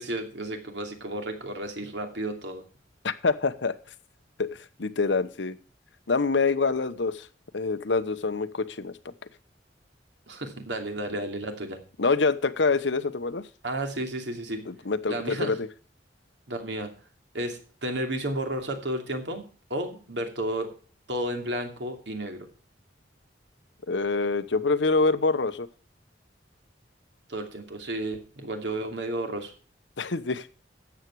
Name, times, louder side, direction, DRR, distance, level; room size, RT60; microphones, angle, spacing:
voice 1, 0.0-2.6 10.3-11.8 13.6-14.6 15.1-15.6 16.5-16.9 17.3-19.4 19.7-20.7 21.1-22.5 27.3-29.5, right 1 dB, 75° right, 4 dB, 2.7 m, -32 dB
voice 2, 3.0-3.8 4.4-5.6 6.1-7.3 7.5-8.9 12.0-13.4 14.7-15.7 23.9-25.7 30.0-30.5, left 4 dB, 80° left, 13 dB, 0.9 m, -26 dB
13.0 x 8.2 x 4.7 m, 0.39 s
head